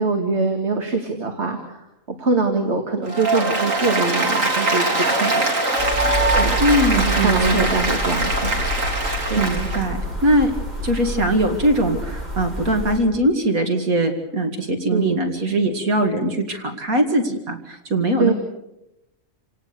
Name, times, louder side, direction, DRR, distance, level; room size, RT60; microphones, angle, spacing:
voice 1, 0.0-1.8 2.2-5.5 6.3-6.6 6.9-8.6 9.3-9.4 14.9-15.2 18.2-18.3, right 3 dB, 50° right, 4 dB, 2.4 m, -23 dB
Applause, 3.1-9.8, right 2 dB, 65° right, 3.8 m, -22 dB
sound 1, 5.8-13.0, right 1 dB, 35° right, 7.1 m, -28 dB
voice 2, 6.6-7.7 9.4-10.5 10.8-18.3, right 1 dB, 85° right, 5 dB, 2.7 m, -21 dB
28.5 x 18.0 x 6.9 m, 0.89 s
omnidirectional pair, 1.5 m